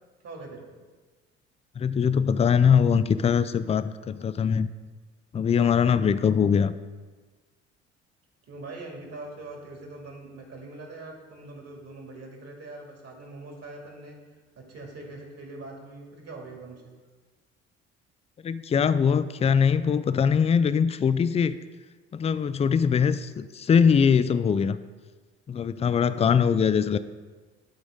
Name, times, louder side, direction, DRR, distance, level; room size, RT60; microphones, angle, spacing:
voice 1, 0.2-0.8 8.5-14.2 14.6-16.9, right 2 dB, 45° right, 0 dB, 2.5 m, -42 dB
voice 2, 1.8-4.7 5.3-6.7 18.4-21.6 22.1-24.8 25.5-27.0, left 7 dB, 20° left, 14 dB, 0.4 m, -22 dB
11.5 x 4.0 x 5.0 m, 1.4 s
figure-of-eight pair, 50°, 34 cm